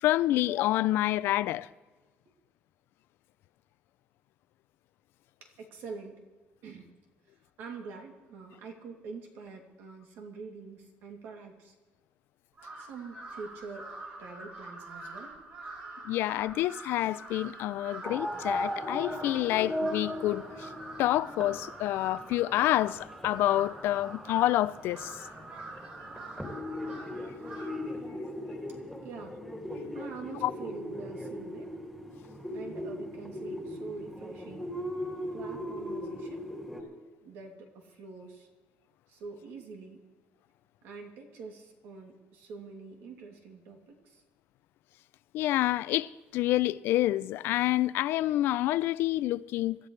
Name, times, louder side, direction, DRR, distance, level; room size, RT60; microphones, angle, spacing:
voice 1, 0.0-1.7 16.0-20.7 21.0-25.2 30.4-30.5 45.3-49.8, left 15 dB, 75° left, 0.4 m, -28 dB
voice 2, 5.4-6.2 6.6-6.9 7.2-11.7 12.8-13.9 14.2-15.4 29.0-29.4 29.9-31.8 32.5-34.7 35.3-36.5 37.2-38.5 39.1-40.1 40.8-44.2, right 4 dB, 80° right, 2.8 m, -45 dB
Crow, 12.5-27.9, right 2 dB, 50° right, 4.7 m, -45 dB
sound 1, 18.0-36.8, left 1 dB, 5° right, 2.4 m, -38 dB
27.0 x 13.0 x 3.3 m
cardioid pair, 165°, 4 cm